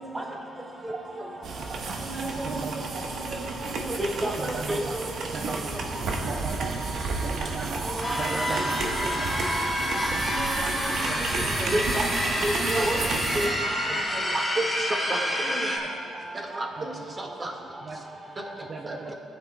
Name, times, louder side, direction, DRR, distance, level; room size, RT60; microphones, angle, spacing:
voice 1, 0.0-1.4 1.9-5.9 7.8-8.5 8.8-9.2 9.9-11.8 12.7-14.3 15.3-15.8, right 1 dB, 10° right, 1 dB, 1.3 m, -38 dB
sound 1, 1.4-13.5, right 3 dB, 65° right, 1.1 m, -32 dB
voice 2, 2.4-3.0 4.4-4.9 5.3-5.7 6.2-6.9 7.2-8.8 9.1-9.3 10.1-10.2 10.6-10.7 11.1-11.2 13.0-13.4 16.8-17.0 17.8-18.0 18.7-19.1, right 4 dB, 50° right, 2 dB, 0.5 m, -36 dB
voice 3, 4.0-4.4 4.7-4.8 11.7-12.1 12.4-13.0 13.3-13.5 14.3-15.2 16.5-16.7 17.2-17.5 18.9-19.0, right 1 dB, 30° right, 1 dB, 1.6 m, -28 dB
sound 2, 8.0-15.8, left 1 dB, 10° left, 1.7 m, -28 dB
17.5 x 9.2 x 2.2 m, 2.5 s
cardioid pair, 90°, 0 cm